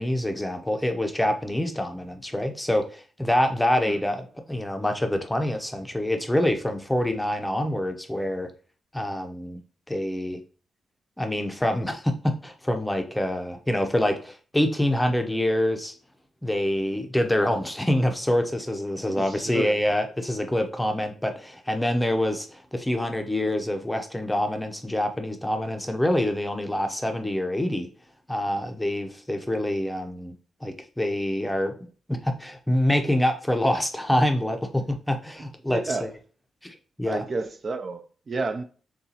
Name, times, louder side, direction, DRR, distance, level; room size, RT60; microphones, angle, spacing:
voice 1, 0.0-8.5 8.9-9.6 9.9-10.4 11.2-15.9 16.4-27.9 28.3-30.3 30.6-31.7 32.1-36.1 36.6-37.2, left 1 dB, 5° left, 5 dB, 0.6 m, -26 dB
voice 2, 19.1-19.8 35.7-36.1 37.1-38.6, right 3 dB, 40° right, 9 dB, 0.3 m, -31 dB
6.7 x 2.3 x 2.8 m, 0.40 s
cardioid pair, 120°, 0 cm